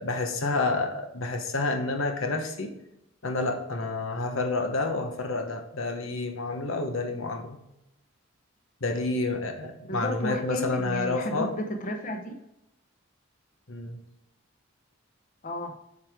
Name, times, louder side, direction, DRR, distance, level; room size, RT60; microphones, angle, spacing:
voice 1, 0.0-2.7 3.2-7.6 8.8-11.5 13.7-14.0, left 3 dB, 85° left, 5 dB, 1.2 m, -29 dB
voice 2, 9.9-12.4 15.4-15.7, left 1 dB, 40° left, 4 dB, 0.9 m, -33 dB
8.2 x 4.9 x 3.6 m, 0.85 s
head